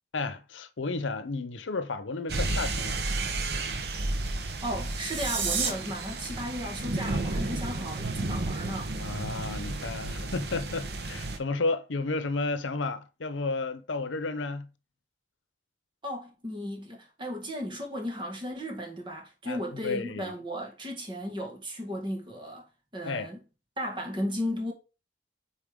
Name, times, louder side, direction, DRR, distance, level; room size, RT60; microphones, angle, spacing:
voice 1, 0.1-3.1 9.0-14.7 19.4-20.3 23.0-23.3, left 3 dB, 90° left, 0.8 m, -32 dB
sound 1, 2.3-11.4, right 2 dB, 55° right, 0.9 m, -32 dB
voice 2, 4.4-8.9 16.0-22.6 22.9-23.4 23.8-24.7, equal, 25° right, 1.9 m, -35 dB
sound 2, 4.7-5.7, right 6 dB, 80° right, 1.7 m, -30 dB
8.5 x 4.4 x 3.7 m
head